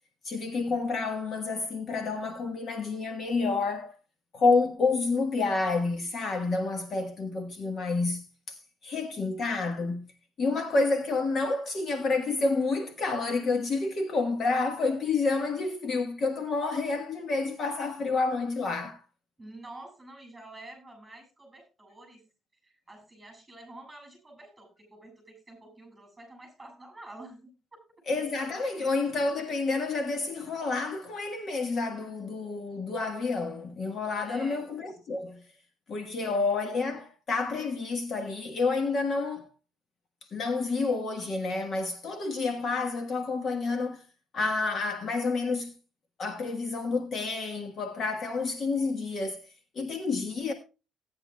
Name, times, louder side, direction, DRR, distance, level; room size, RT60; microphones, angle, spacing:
voice 1, 0.2-3.9 4.3-10.1 10.4-19.0 28.1-35.5 35.9-39.5 40.2-44.0 44.3-45.7 46.2-50.5, left 3 dB, 40° left, 1.3 m, -29 dB
voice 2, 19.4-22.2 22.6-27.5 28.8-28.9 34.2-34.7 36.2-36.4, right 2 dB, 10° right, 7.4 m, -48 dB
17.0 x 9.8 x 2.2 m
cardioid pair, 150°, 0 cm